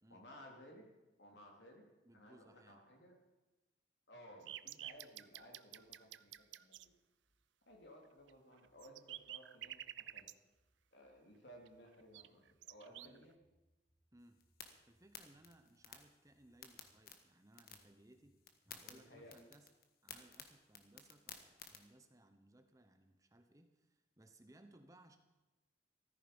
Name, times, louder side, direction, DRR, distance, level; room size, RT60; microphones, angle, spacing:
voice 1, 0.1-0.9 1.2-1.8 2.1-3.2 4.1-6.8 7.7-10.3 10.9-13.3 18.9-19.4, equal, 70° left, 0 dB, 3.4 m, -59 dB
voice 2, 2.0-2.8 12.9-13.3 14.1-14.4 14.9-18.4 18.6-19.7 20.0-25.2, right 1 dB, 20° right, 7 dB, 1.0 m, -64 dB
sound 1, 4.5-6.9 8.3-8.4 8.6-10.3 11.7-11.8 12.1-13.2, right 13 dB, 80° right, 0.5 m, -50 dB
sound 2, 4.8-5.5 5.8-6.4 6.7-7.4 7.7-8.4 8.6-9.3 9.6-10.3 10.6-11.2 11.5-12.2 12.5-13.1 13.4-14.1 14.4-15.0 15.3-16.0 16.3-16.9 17.2-17.3 17.7-18.3 18.6-18.8 19.1-19.6, equal, 10° left, 5.3 m, -78 dB
sound 3, 14.2-21.8, left 7 dB, 55° left, 1.5 m, -57 dB
14.5 x 13.5 x 5.3 m, 1.1 s
head